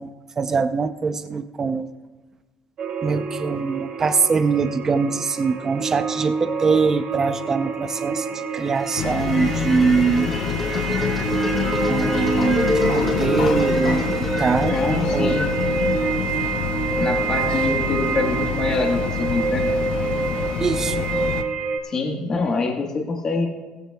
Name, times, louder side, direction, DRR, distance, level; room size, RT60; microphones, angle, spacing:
voice 1, 0.0-1.9 3.0-10.3 11.9-14.8 15.1-15.4 20.6-21.1, right 5 dB, 20° right, 10 dB, 0.5 m, -23 dB
sound 1, 2.8-21.8, right 5 dB, 40° right, 1.6 m, -27 dB
sound 2, 8.6-16.7, left 1 dB, 5° left, 2.9 m, -30 dB
sound 3, 9.0-21.4, left 8 dB, 50° left, 0.6 m, -27 dB
voice 2, 14.7-15.5 16.9-19.6 21.8-23.5, left 3 dB, 25° left, 1 dB, 1.3 m, -25 dB
19.0 x 15.0 x 2.3 m, 1.2 s
cardioid pair, 175°, 2 cm